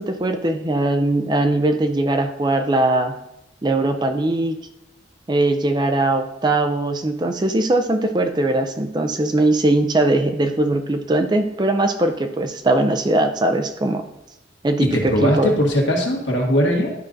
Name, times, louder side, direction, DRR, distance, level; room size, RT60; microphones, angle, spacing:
voice 1, 0.0-3.1 3.6-4.6 5.3-14.0 14.6-15.5, right 2 dB, 25° right, 6 dB, 0.4 m, -20 dB
voice 2, 14.8-16.9, equal, 75° left, -1 dB, 1.7 m, -19 dB
12.0 x 5.4 x 2.5 m, 0.88 s
head